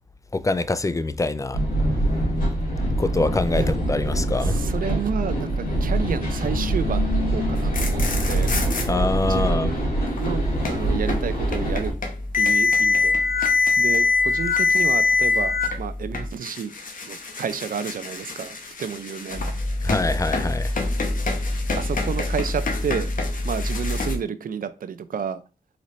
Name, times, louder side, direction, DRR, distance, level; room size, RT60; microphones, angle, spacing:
voice 1, 0.3-1.6 3.0-4.6 8.9-9.7 19.8-20.7, left 2 dB, 20° left, 0.4 m, -24 dB
sound 1, 1.5-11.9, right 1 dB, 90° left, 2.5 m, -24 dB
voice 2, 4.4-8.5 9.3-9.8 10.2-11.9 12.3-13.5 13.8-16.7 17.1-19.5 20.8-20.9 21.8-23.1 23.4-25.4, right 7 dB, 80° right, 0.4 m, -31 dB
sound 2, 7.6-8.9 10.1-24.1, left 4 dB, 70° left, 1.0 m, -24 dB
4.0 x 4.0 x 3.1 m
wide cardioid pair, 70°, 14 cm